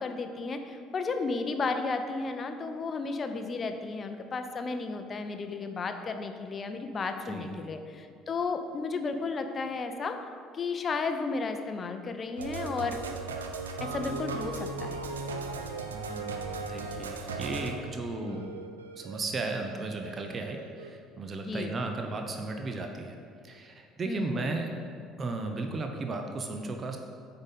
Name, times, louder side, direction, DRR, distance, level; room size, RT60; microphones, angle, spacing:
voice 1, 0.0-10.2 10.5-13.0 13.8-15.1 18.2-18.4 21.5-21.8 24.1-24.5, left 4 dB, 35° left, 6 dB, 0.6 m, -33 dB
voice 2, 7.3-7.6 15.9-18.4 19.0-23.2 23.4-24.7 25.2-27.0, right 3 dB, 35° right, 4 dB, 0.7 m, -35 dB
sound 1, 12.4-20.9, right 3 dB, 75° right, 0.4 m, -38 dB
8.8 x 3.9 x 5.4 m, 2.3 s
figure-of-eight pair, 55°, 0 cm